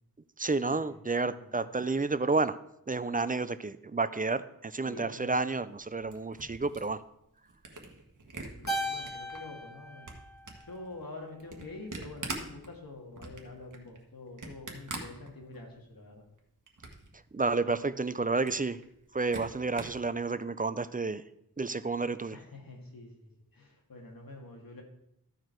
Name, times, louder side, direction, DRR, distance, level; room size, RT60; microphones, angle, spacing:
voice 1, 0.4-2.6 2.9-7.0 17.3-18.8 19.1-21.2 21.6-22.4, right 3 dB, 25° right, 14 dB, 0.4 m, -30 dB
voice 2, 4.9-5.3 8.6-10.1 10.7-16.2 22.3-24.8, left 2 dB, 65° left, 1 dB, 2.1 m, -46 dB
Camera, 5.7-9.4 9.8-15.9 16.2-17.1 17.5-17.6 17.8-17.9 18.2-20.0, right 3 dB, 55° right, 1.5 m, -44 dB
Keyboard (musical), 8.7-11.2, equal, 50° left, 2.4 m, -38 dB
14.0 x 4.7 x 4.6 m, 0.78 s
wide cardioid pair, 60°, 37 cm